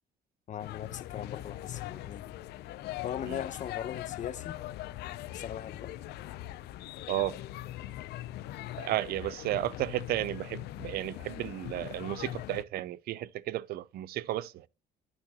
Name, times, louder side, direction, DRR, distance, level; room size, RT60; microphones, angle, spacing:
voice 1, 0.5-2.4 3.0-4.6 5.3-5.9, left 9 dB, 45° left, 0.8 m, -39 dB
sound 1, 0.6-12.6, left 14 dB, 75° left, 0.5 m, -41 dB
voice 2, 8.8-14.7, right 14 dB, 65° right, 0.5 m, -33 dB
8.9 x 8.9 x 2.8 m
cardioid pair, 110°, 17 cm